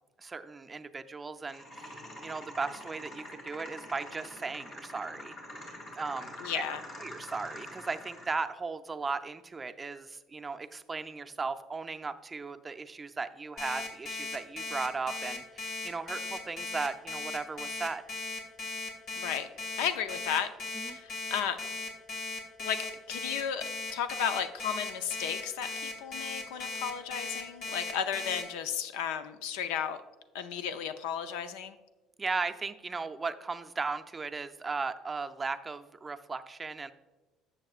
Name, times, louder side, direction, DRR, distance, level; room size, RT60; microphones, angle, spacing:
voice 1, 0.2-5.4 6.0-6.6 7.0-18.0 20.7-21.0 32.2-36.9, right 4 dB, 25° right, 9 dB, 0.5 m, -37 dB
sound 1, 1.5-8.5, left 1 dB, 40° left, 2.3 m, -45 dB
voice 2, 6.4-6.8 19.2-19.5 19.8-20.5 20.7-21.6 22.6-22.8 23.1-23.6 23.9-30.0 30.3-31.8, left 8 dB, 85° left, 11 dB, 0.5 m, -34 dB
Alarm, 13.6-28.4, left 3 dB, 60° left, 2.3 m, -37 dB
12.0 x 7.2 x 2.4 m, 1.2 s
supercardioid pair, 85°, 0 cm